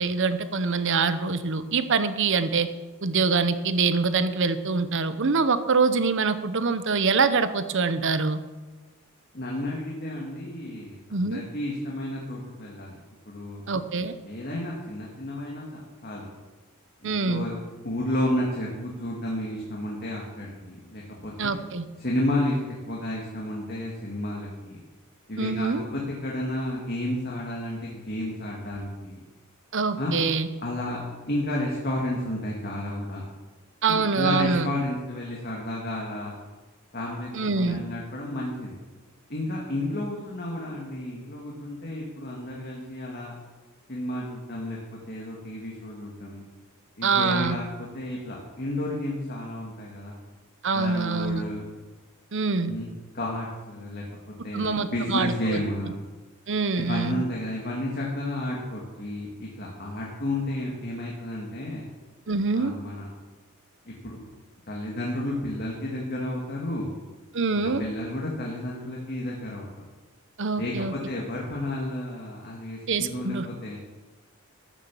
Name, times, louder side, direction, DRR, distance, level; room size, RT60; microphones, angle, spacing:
voice 1, 0.0-2.7 3.0-8.4 11.1-11.4 13.7-14.1 17.0-17.5 21.4-21.9 25.4-25.8 29.7-30.5 33.8-34.7 37.3-37.8 47.0-47.6 50.6-51.4 52.3-52.7 54.5-55.6 56.5-57.2 62.3-62.7 67.3-67.8 70.4-70.9 72.9-73.5, right 4 dB, 60° right, 11 dB, 0.9 m, -24 dB
voice 2, 9.3-13.0 13.3-13.6 14.2-16.3 17.0-17.6 17.8-21.5 22.0-24.8 25.3-29.2 30.0-30.2 30.6-33.2 33.9-36.4 36.9-37.3 37.5-38.8 39.3-43.3 43.9-44.8 45.1-46.4 47.0-50.1 50.7-51.7 52.6-54.0 54.4-56.0 56.8-61.9 62.5-63.1 63.8-64.2 64.7-66.9 67.8-69.7 70.6-73.8, left 1 dB, 45° left, -3 dB, 2.1 m, -32 dB
13.0 x 7.2 x 7.1 m, 1.2 s
head